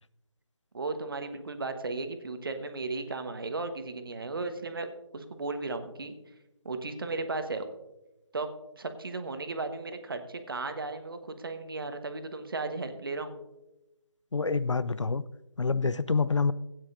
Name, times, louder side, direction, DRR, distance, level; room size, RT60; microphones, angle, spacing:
voice 1, 0.7-4.9 5.1-6.1 6.6-7.7 8.3-8.5 8.8-13.4, right 3 dB, 45° right, 8 dB, 1.2 m, -35 dB
voice 2, 14.3-15.2 15.6-16.5, left 4 dB, 80° left, 17 dB, 0.5 m, -27 dB
16.5 x 9.5 x 2.6 m, 0.97 s
figure-of-eight pair, 160°, 16 cm